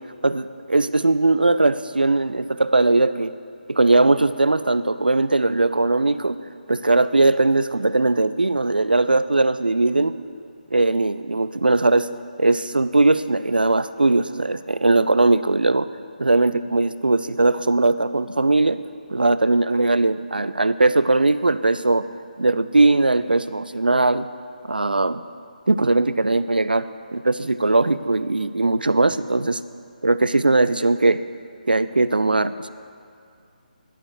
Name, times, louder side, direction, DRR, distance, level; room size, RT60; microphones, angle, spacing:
voice 1, 0.2-3.3 3.7-6.4 6.7-10.2 10.7-12.1 12.4-15.9 16.2-18.8 19.1-22.1 22.4-24.3 24.6-25.2 25.7-26.9 27.1-29.6 30.0-31.2 31.7-32.7, right 2 dB, 80° right, 14 dB, 0.4 m, -19 dB
11.5 x 5.0 x 6.5 m, 2.3 s
figure-of-eight pair, 145°, 5 cm